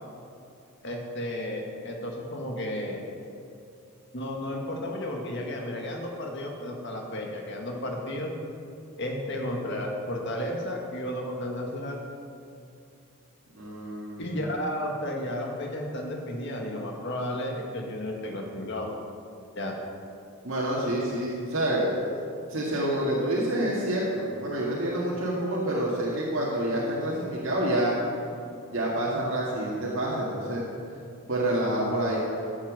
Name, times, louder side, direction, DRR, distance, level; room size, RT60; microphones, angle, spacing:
voice 1, 0.8-3.0 4.1-8.3 9.0-12.0 14.2-18.9 19.6-19.7, left 1 dB, 55° left, 1 dB, 1.9 m, -33 dB
voice 2, 13.6-14.3 20.4-21.9 22.5-28.0 28.7-30.7 31.3-32.2, right 1 dB, 60° right, -5 dB, 2.0 m, -27 dB
12.5 x 7.4 x 7.5 m, 2.5 s
head